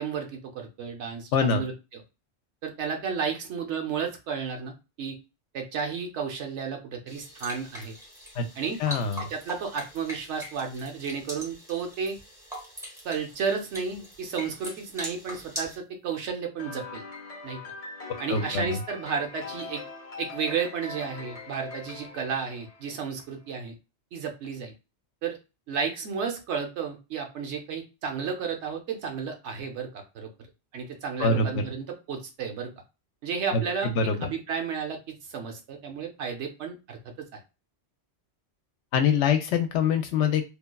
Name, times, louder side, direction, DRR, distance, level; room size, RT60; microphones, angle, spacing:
voice 1, 0.0-1.7 2.6-5.2 5.5-7.9 8.6-8.8 9.2-12.2 13.0-17.0 17.4-17.6 18.2-19.8 20.2-23.7 24.1-24.7 25.2-25.4 25.7-30.3 30.7-32.7 33.2-33.9 34.2-37.3, right 6 dB, 75° right, 3 dB, 1.0 m, -32 dB
voice 2, 1.3-1.6 8.4-8.5 8.8-9.3 18.3-18.8 31.2-31.6 33.5-34.3 38.9-40.4, left 5 dB, 90° left, 7 dB, 0.9 m, -24 dB
sound 1, 7.1-15.8, equal, 5° right, 1.0 m, -42 dB
sound 2, 16.6-23.2, left 3 dB, 40° left, 0.6 m, -42 dB
3.1 x 2.3 x 2.2 m, 0.28 s
omnidirectional pair, 1.2 m